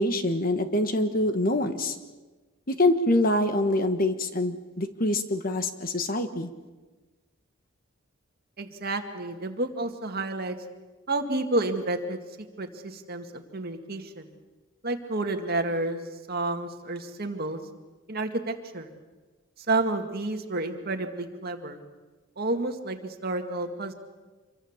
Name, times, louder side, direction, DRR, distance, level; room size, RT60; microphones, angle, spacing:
voice 1, 0.0-2.0 2.7-6.5, left 1 dB, 45° left, 8 dB, 1.4 m, -25 dB
voice 2, 8.6-10.6 11.1-12.2 12.6-14.3 14.8-16.0 16.3-17.6 18.1-18.9 19.6-21.8 22.4-23.9, right 2 dB, 50° right, 5 dB, 2.1 m, -30 dB
26.5 x 23.5 x 7.3 m, 1.3 s
head